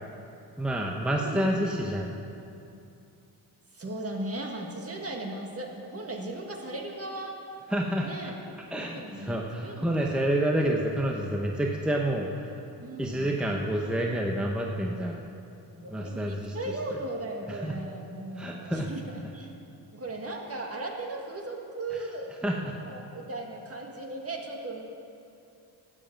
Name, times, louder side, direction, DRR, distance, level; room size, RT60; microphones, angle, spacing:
voice 1, 0.6-2.1 7.7-8.1 8.7-12.5 13.0-15.2 15.9-16.6 17.5-17.7 18.4-18.9 22.4-22.7, right 1 dB, ahead, 0 dB, 0.9 m, -28 dB
voice 2, 3.7-7.4 8.0-8.3 8.7-10.2 12.7-13.4 15.7-19.5 19.9-22.3 22.8-24.8, right 2 dB, 35° right, 1 dB, 1.8 m, -37 dB
12.5 x 7.7 x 7.4 m, 2.7 s
cardioid pair, 95°, 40 cm